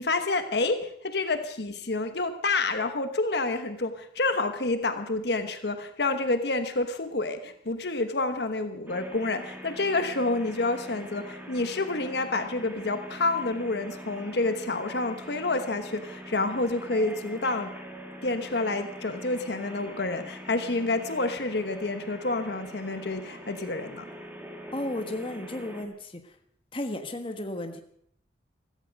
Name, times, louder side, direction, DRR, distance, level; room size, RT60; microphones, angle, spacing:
voice 1, 0.0-17.7 18.2-24.0, left 2 dB, 65° left, 8 dB, 1.1 m, -28 dB
sound 1, 8.9-25.8, equal, 10° right, 1.8 m, -43 dB
voice 2, 24.7-26.3 26.7-27.8, left 1 dB, 30° left, 6 dB, 1.3 m, -34 dB
16.0 x 14.5 x 5.3 m, 0.65 s
head